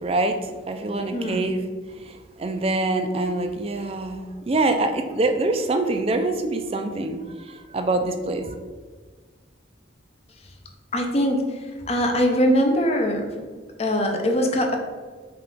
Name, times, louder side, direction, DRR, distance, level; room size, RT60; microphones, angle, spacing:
voice 1, 0.0-1.6 1.9-7.2 7.5-8.5, right 2 dB, 30° right, 6 dB, 0.4 m, -25 dB
voice 2, 1.1-1.5 10.9-13.3 13.8-14.8, equal, 35° left, 3 dB, 0.6 m, -22 dB
5.6 x 2.4 x 3.7 m, 1.5 s
head